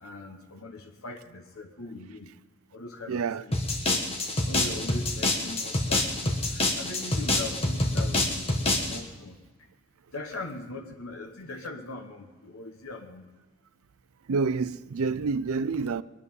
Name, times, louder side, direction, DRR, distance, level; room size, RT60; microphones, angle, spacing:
voice 1, 0.0-2.3 2.7-3.2 3.9-4.0 4.5-6.3 6.8-8.4 8.6-9.4 10.1-13.2, left 2 dB, 75° left, 1.0 m, -40 dB
voice 2, 3.1-3.4 14.3-16.0, right 4 dB, 80° right, 0.5 m, -28 dB
sound 1, 3.5-9.0, left 2 dB, 25° left, 1.4 m, -27 dB
22.0 x 9.8 x 5.4 m
head